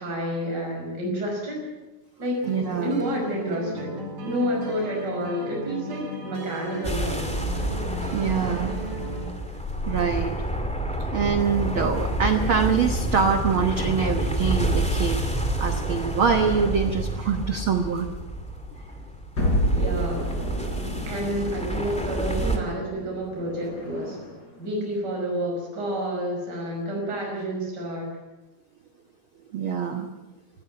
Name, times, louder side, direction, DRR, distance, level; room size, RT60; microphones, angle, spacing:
voice 1, 0.0-1.7 2.2-7.4 19.7-20.4 21.1-24.2 24.6-28.1, equal, 25° right, -1 dB, 6.1 m, -29 dB
sound 1, 2.4-9.3, equal, 60° right, 6.1 m, -36 dB
voice 2, 2.5-3.0 8.1-8.7 9.9-10.5 11.1-15.2 15.6-18.1 29.5-30.1, right 6 dB, 75° right, 6 dB, 1.2 m, -24 dB
sound 2, 6.8-22.6, right 1 dB, 5° left, 1.1 m, -29 dB
sound 3, 19.4-24.5, equal, 30° left, 4.1 m, -29 dB
20.0 x 14.5 x 8.9 m, 1.1 s
omnidirectional pair, 4.1 m